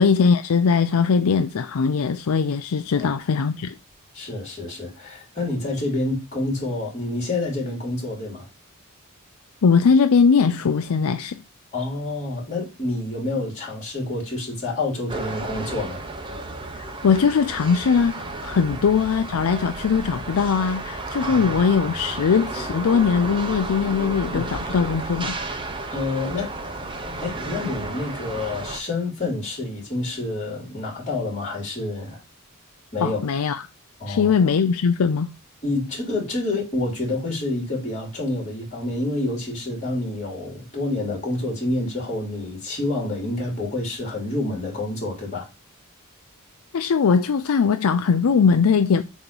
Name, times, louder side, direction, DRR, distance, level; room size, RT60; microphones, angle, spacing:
voice 1, 0.0-3.8 9.6-11.4 16.8-25.4 33.0-33.6 34.1-35.3 46.7-49.0, left 5 dB, 70° left, 0.4 m, -20 dB
voice 2, 4.1-8.5 11.7-16.0 18.6-18.8 21.1-21.4 24.3-24.5 25.9-26.5 27.2-32.2 32.9-33.2 34.0-34.3 35.6-45.5, left 2 dB, 35° left, 3.3 m, -28 dB
sound 1, 15.1-28.8, right 2 dB, 25° right, 0.9 m, -32 dB
7.7 x 3.1 x 5.3 m
head